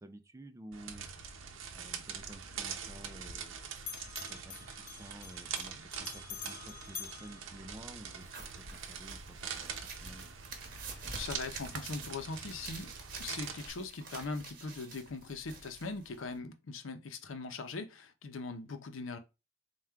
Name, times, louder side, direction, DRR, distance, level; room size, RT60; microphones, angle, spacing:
voice 1, 0.0-1.4 1.7-3.6 4.3-10.3, right 1 dB, 15° right, 0.3 m, -52 dB
sound 1, 0.7-13.7, right 7 dB, 80° right, 0.7 m, -44 dB
Bell, 2.1-3.5 3.8-8.2, left 7 dB, 40° left, 0.6 m, -48 dB
sound 2, 8.2-16.4, right 3 dB, 45° right, 1.1 m, -48 dB
voice 2, 10.9-12.9 13.2-19.2, left 3 dB, 85° left, 0.6 m, -41 dB
3.6 x 2.3 x 4.4 m
head